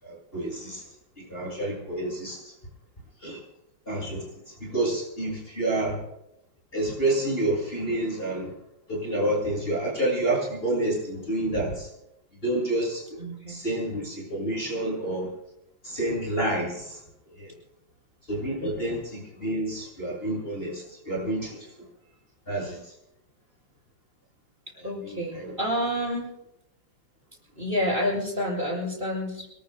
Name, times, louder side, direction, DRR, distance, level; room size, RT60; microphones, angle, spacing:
voice 1, 0.0-0.8 1.2-2.5 3.2-3.4 3.9-4.3 4.6-6.0 6.7-8.5 8.9-11.9 12.4-13.0 13.5-15.3 15.8-17.0 17.4-17.5 18.3-21.7 22.5-22.9 24.8-25.5, right 1 dB, 30° left, -2 dB, 7.2 m, -29 dB
voice 2, 13.2-13.6 18.6-18.8 24.8-26.3 27.6-29.5, equal, 25° right, -3 dB, 8.3 m, -29 dB
27.0 x 22.0 x 2.3 m, 0.84 s
omnidirectional pair, 2.1 m